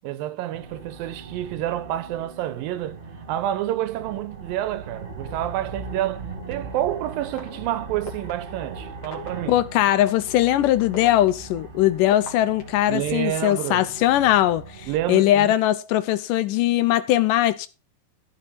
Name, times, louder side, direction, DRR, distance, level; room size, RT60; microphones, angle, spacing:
voice 1, 0.0-3.0 3.3-9.6 12.9-13.9 14.9-15.6, right 13 dB, 85° right, 2.5 m, -28 dB
sound 1, 0.5-15.2, right 4 dB, 25° right, 1.9 m, -39 dB
sound 2, 6.5-6.6 7.4-7.5 8.1-8.3 9.0-9.3 10.1-10.2 10.8-12.8 13.5-14.3, left 4 dB, 50° left, 3.6 m, -38 dB
voice 2, 9.5-17.7, left 13 dB, 80° left, 2.1 m, -20 dB
14.5 x 5.5 x 4.2 m
omnidirectional pair, 4.1 m